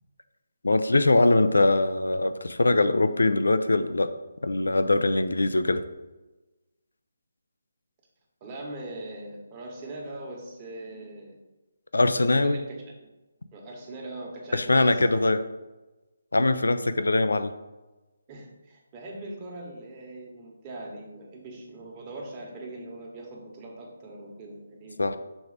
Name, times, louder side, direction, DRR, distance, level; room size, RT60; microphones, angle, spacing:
voice 1, 0.6-4.1 4.4-5.8 11.9-12.6 14.5-15.4 16.3-17.5 25.0-25.2, left 2 dB, 85° left, 11 dB, 0.6 m, -22 dB
voice 2, 8.4-11.4 12.4-13.1 13.5-15.3 17.0-17.1 18.3-25.1, right 2 dB, 25° right, -2 dB, 1.4 m, -41 dB
6.2 x 3.4 x 5.0 m, 1.1 s
figure-of-eight pair, 155°, 0 cm